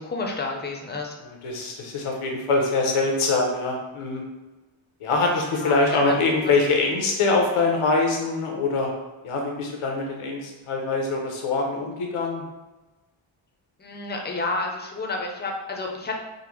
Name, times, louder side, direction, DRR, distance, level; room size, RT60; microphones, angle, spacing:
voice 1, 0.0-1.1 5.5-5.8 6.0-6.1 6.4-6.5 13.8-16.1, left 3 dB, 20° left, 1 dB, 0.5 m, -30 dB
voice 2, 1.2-4.2 5.0-8.9 9.2-12.4, left 3 dB, 85° left, 0 dB, 0.7 m, -24 dB
3.8 x 2.1 x 3.0 m, 1.1 s
wide cardioid pair, 80°, 50 cm